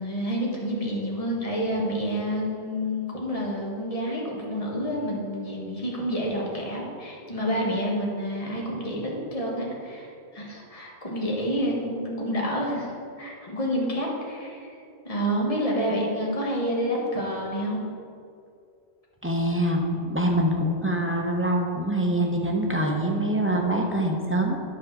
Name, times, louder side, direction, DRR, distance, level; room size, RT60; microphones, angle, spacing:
voice 1, 0.0-14.8 15.0-17.8, equal, 30° left, -3 dB, 1.6 m, -29 dB
voice 2, 19.2-24.6, right 1 dB, 15° right, 0 dB, 0.7 m, -24 dB
9.4 x 4.2 x 6.4 m, 2.4 s
omnidirectional pair, 1.1 m